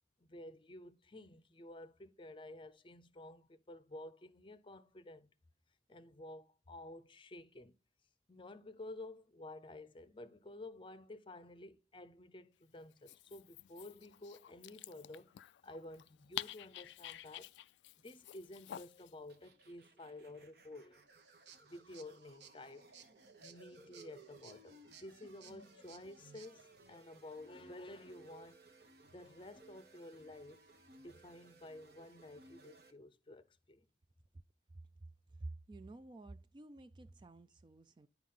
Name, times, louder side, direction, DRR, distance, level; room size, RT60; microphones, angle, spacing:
voice 1, 0.2-5.3 5.9-7.7 8.3-15.3 15.6-17.5 18.0-21.0 21.6-22.9 23.4-28.6 29.1-30.6 31.0-33.8, left 2 dB, 30° left, 0.6 m, -52 dB
Dog, 12.9-19.1, left 12 dB, 80° left, 0.3 m, -49 dB
sound 1, 19.3-32.9, right 3 dB, 60° right, 1.2 m, -61 dB
sound 2, 21.1-26.5, right 8 dB, 85° right, 0.9 m, -61 dB
voice 2, 35.4-38.1, right 2 dB, 25° right, 0.3 m, -50 dB
10.0 x 4.7 x 3.8 m
head